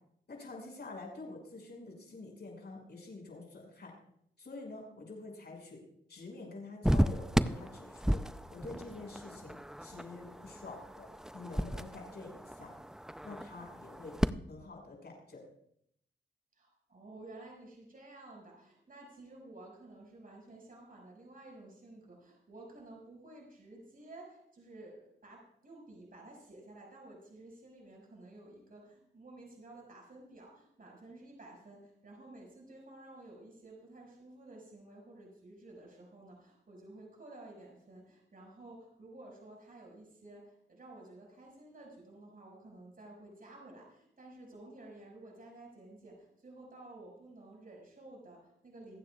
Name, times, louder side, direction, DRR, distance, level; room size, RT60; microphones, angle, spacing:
voice 1, 0.3-3.9 4.4-5.8 6.1-8.2 8.5-9.5 9.8-11.1 11.3-12.7 13.2-14.2 14.5-15.5, left 3 dB, 55° left, 0 dB, 6.0 m, -47 dB
sound 1, 6.8-14.3, equal, 5° right, 0.5 m, -34 dB
voice 2, 16.6-49.0, right 2 dB, 45° right, -1 dB, 5.8 m, -53 dB
27.0 x 9.4 x 2.4 m, 0.72 s
cardioid pair, 55°, 20 cm